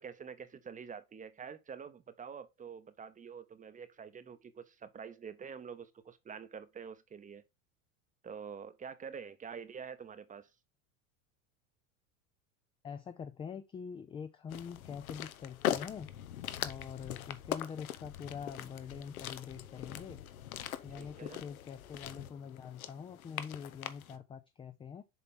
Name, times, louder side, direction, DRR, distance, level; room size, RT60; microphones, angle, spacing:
voice 1, 0.0-7.4 8.2-10.5 20.9-21.4, right 6 dB, 20° right, 0.7 m, -47 dB
voice 2, 12.8-16.1 16.6-20.2 20.8-25.0, left 7 dB, 15° left, 0.4 m, -44 dB
sound 1, 14.5-24.2, left 11 dB, 85° left, 0.9 m, -41 dB
7.1 x 4.1 x 3.6 m
hypercardioid pair, 100°, 42 cm